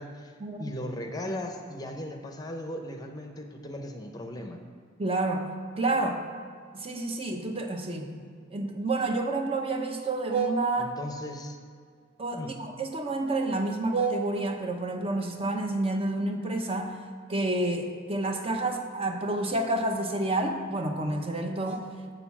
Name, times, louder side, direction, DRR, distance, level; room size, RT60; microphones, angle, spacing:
voice 1, 0.0-0.3 0.6-4.6 10.8-11.6 12.3-12.5, left 1 dB, 20° left, 4 dB, 0.7 m, -37 dB
voice 2, 5.0-6.2 6.7-8.1 8.5-10.9 12.2-17.0 17.3-21.8, right 2 dB, 30° right, 4 dB, 0.9 m, -29 dB
8.0 x 6.8 x 7.1 m, 2.1 s
head